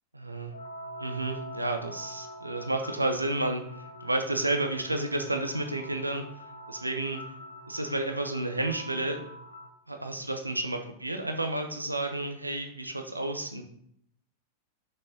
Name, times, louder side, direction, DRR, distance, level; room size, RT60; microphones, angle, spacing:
voice 1, 0.1-0.5 1.0-3.6 4.0-6.2 6.7-7.2 7.7-9.2 9.9-13.6, right 2 dB, 85° right, 5 dB, 0.9 m, -31 dB
sound 1, 0.5-9.7, equal, 70° left, 1.0 m, -44 dB
6.4 x 5.9 x 5.3 m, 0.69 s
figure-of-eight pair, 90°, 0 cm